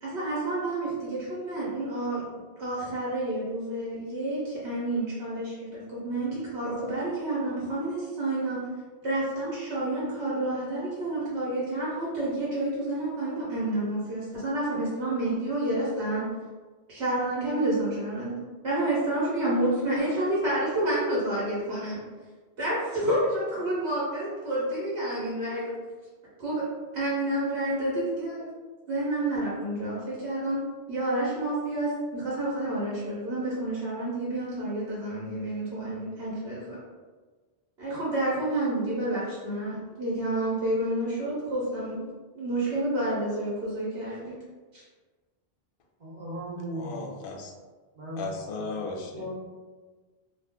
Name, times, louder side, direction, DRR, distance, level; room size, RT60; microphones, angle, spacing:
voice 1, 0.0-2.3 2.6-8.6 9.0-16.2 16.9-18.4 18.6-22.0 22.6-25.7 26.4-26.6 26.9-28.5 28.9-30.6 30.9-36.8 37.8-42.1 42.3-44.4, right 1 dB, 75° right, -7 dB, 1.1 m, -29 dB
voice 2, 46.0-47.2 47.9-48.2 48.6-49.4, right 1 dB, 45° right, -6 dB, 0.8 m, -38 dB
voice 3, 46.7-47.5 48.2-49.3, left 4 dB, 65° left, 1 dB, 0.7 m, -36 dB
2.4 x 2.3 x 3.4 m, 1.4 s
omnidirectional pair, 1.1 m